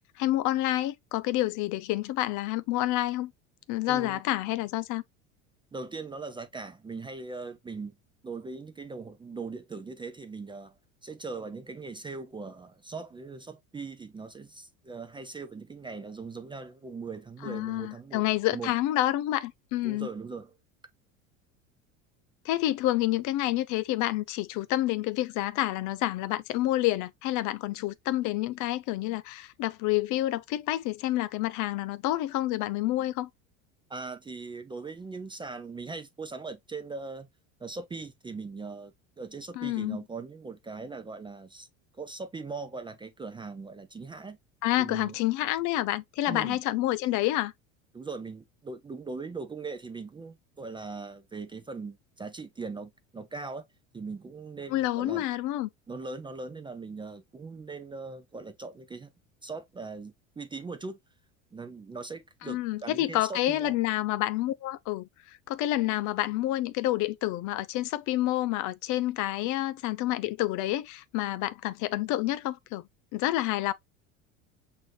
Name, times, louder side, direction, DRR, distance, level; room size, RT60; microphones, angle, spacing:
voice 1, 0.0-3.3 3.7-5.0 17.4-20.1 22.4-33.3 39.6-40.0 44.6-47.5 54.7-55.7 62.4-72.8 73.1-73.7, left 15 dB, 50° left, 0.5 m, -28 dB
voice 2, 3.8-4.2 5.7-8.0 8.2-18.7 19.8-20.6 33.9-37.3 37.6-41.7 42.0-44.4 44.8-45.2 46.3-46.6 47.9-53.6 53.9-55.3 55.9-59.1 59.4-61.0 61.5-63.8, right 4 dB, 15° right, 0.4 m, -40 dB
6.1 x 2.7 x 3.1 m
hypercardioid pair, 85°, 39 cm